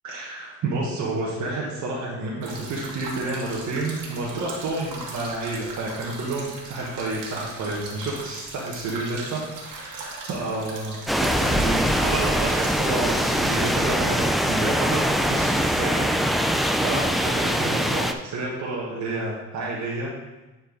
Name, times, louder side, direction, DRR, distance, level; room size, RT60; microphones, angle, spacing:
voice 1, 0.0-20.1, right 2 dB, 60° right, -5 dB, 1.5 m, -30 dB
sound 1, 2.4-13.9, right 3 dB, 75° right, 2.1 m, -39 dB
sound 2, 11.1-18.1, equal, ahead, 0.3 m, -23 dB
10.0 x 4.5 x 4.0 m, 1.1 s
cardioid pair, 115°, 33 cm